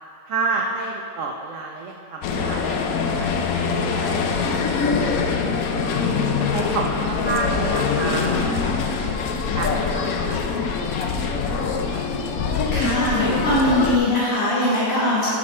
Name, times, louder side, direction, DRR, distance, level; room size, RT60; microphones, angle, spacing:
voice 1, 0.3-2.8 3.2-4.1 4.4-6.0 6.4-8.7 9.5-10.0 10.3-12.1, right 3 dB, 85° right, 0 dB, 0.6 m, -31 dB
sound 1, 2.2-14.0, left 5 dB, 70° left, 0.9 m, -23 dB
voice 2, 12.7-15.3, left 1 dB, 40° left, -7 dB, 1.1 m, -21 dB
11.0 x 5.3 x 4.2 m, 2.4 s
omnidirectional pair, 2.1 m